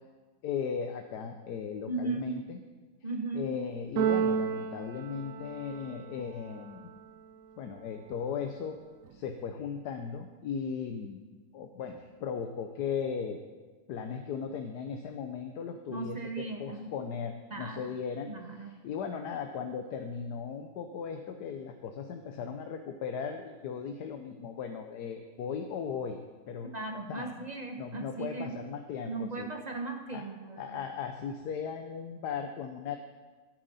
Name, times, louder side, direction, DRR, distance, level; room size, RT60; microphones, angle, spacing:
voice 1, 0.4-2.6 3.3-6.9 7.6-8.8 9.1-11.2 11.5-13.4 13.9-26.2 26.5-26.7 27.1-27.5 27.8-29.5 30.1-30.3 30.6-33.0, left 6 dB, 90° left, 5 dB, 1.3 m, -37 dB
voice 2, 1.9-2.4 3.0-3.5 15.9-16.9 17.5-17.8 18.3-18.7 26.7-28.5 29.1-30.8, right 3 dB, 35° right, 4 dB, 0.8 m, -37 dB
Keyboard (musical), 4.0-6.1, right 7 dB, 65° right, 0.9 m, -31 dB
14.5 x 9.2 x 4.1 m, 1.3 s
omnidirectional pair, 1.7 m